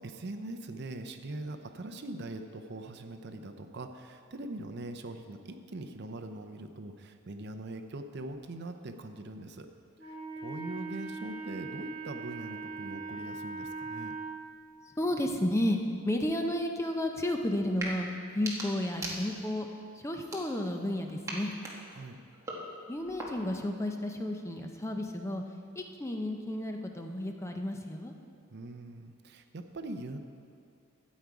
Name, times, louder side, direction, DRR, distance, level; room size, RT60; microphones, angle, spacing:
voice 1, 0.0-9.7 10.0-14.2 21.9-22.2 28.5-30.2, right 2 dB, 50° right, 7 dB, 0.6 m, -42 dB
Wind instrument woodwind instrument, 10.0-14.3, right 3 dB, 30° right, 1.8 m, -40 dB
voice 2, 15.0-15.8 16.0-18.1 18.3-19.7 19.9-21.5 22.9-25.4 25.7-28.1, left 1 dB, 15° left, 4 dB, 0.6 m, -32 dB
sound 1, 17.7-17.9 18.3-19.6 20.2-20.9 21.2-23.6, right 1 dB, 15° right, 1.4 m, -41 dB
12.5 x 8.3 x 4.8 m, 2.4 s
head